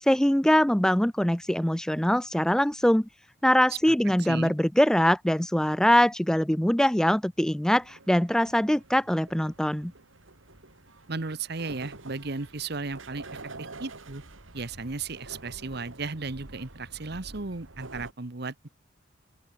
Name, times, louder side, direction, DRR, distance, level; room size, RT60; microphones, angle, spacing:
voice 1, 0.0-3.1 3.4-9.9, equal, 5° left, 0.5 m, -23 dB
sound 1, 7.8-18.1, right 2 dB, 90° right, 3.1 m, -47 dB
voice 2, 11.1-13.3 13.6-14.2 14.5-18.7, right 4 dB, 55° right, 1.2 m, -35 dB
open air
head